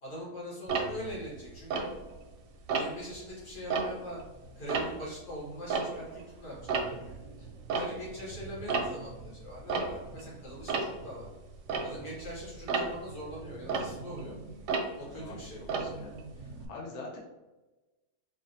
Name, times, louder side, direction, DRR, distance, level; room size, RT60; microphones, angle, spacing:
voice 1, 0.0-1.9 2.7-4.2 4.6-11.3 11.8-14.4 15.0-15.6, equal, 85° left, -7 dB, 2.1 m, -42 dB
Tick-tock, 0.7-2.3 2.7-3.1 3.5-6.3 6.5-16.7, right 4 dB, 70° right, 0.8 m, -35 dB
voice 2, 15.0-15.5 15.7-16.1 16.4-17.2, left 3 dB, 55° left, -2 dB, 1.0 m, -44 dB
4.2 x 2.4 x 2.6 m, 1.1 s
omnidirectional pair, 1.7 m